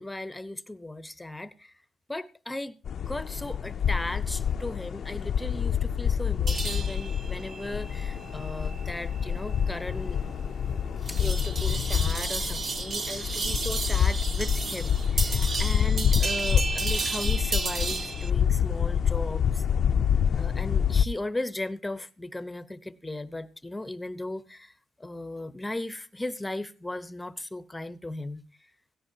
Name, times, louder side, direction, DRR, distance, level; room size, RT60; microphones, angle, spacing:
voice 1, 0.0-1.7 2.1-2.8 3.0-10.2 11.1-19.7 20.3-28.4, left 2 dB, 10° left, 0.9 m, -37 dB
sound 1, 2.8-21.1, left 8 dB, 60° left, 0.5 m, -27 dB
sound 2, 6.5-18.3, right 4 dB, 45° right, 0.9 m, -34 dB
17.0 x 14.0 x 2.8 m
cardioid pair, 90°, 0 cm